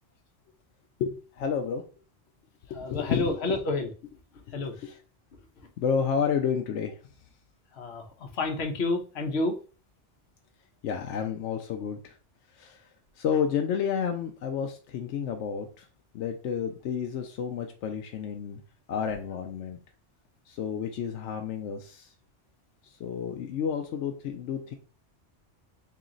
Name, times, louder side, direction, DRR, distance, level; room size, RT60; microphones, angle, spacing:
voice 1, 1.0-1.8 2.7-3.4 4.5-5.0 5.8-7.0 10.8-12.2 12.5-12.8 13.2-15.9 16.1-18.6 18.9-19.8 20.5-22.1 22.8-24.7, left 7 dB, 80° left, 4 dB, 0.9 m, -31 dB
voice 2, 2.7-3.9 4.5-4.7 7.8-9.5, left 2 dB, 60° left, 2 dB, 1.1 m, -29 dB
3.2 x 2.9 x 3.8 m, 0.36 s
omnidirectional pair, 1.2 m